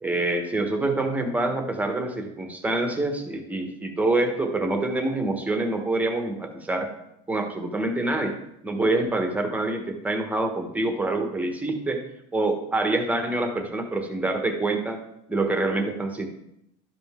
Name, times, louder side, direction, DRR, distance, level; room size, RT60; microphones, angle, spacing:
voice 1, 0.0-6.9 7.3-12.0 12.3-15.0 15.3-16.3, right 2 dB, 10° right, 4 dB, 1.2 m, -26 dB
12.0 x 5.2 x 3.6 m, 0.79 s
supercardioid pair, 120°, 17 cm